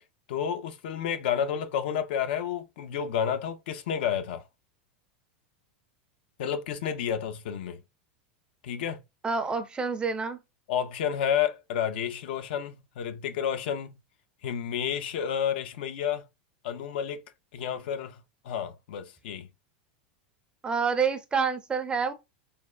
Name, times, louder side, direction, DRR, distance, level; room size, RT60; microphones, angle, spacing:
voice 1, 0.3-4.4 6.4-7.8 8.6-9.0 10.7-14.0 14.4-16.2 16.6-17.2 17.5-18.2 18.4-19.5, left 8 dB, 75° left, 0.4 m, -30 dB
voice 2, 9.2-10.4 20.6-22.1, right 5 dB, 15° right, 0.5 m, -28 dB
3.4 x 2.1 x 2.2 m
hypercardioid pair, 115°, 6 cm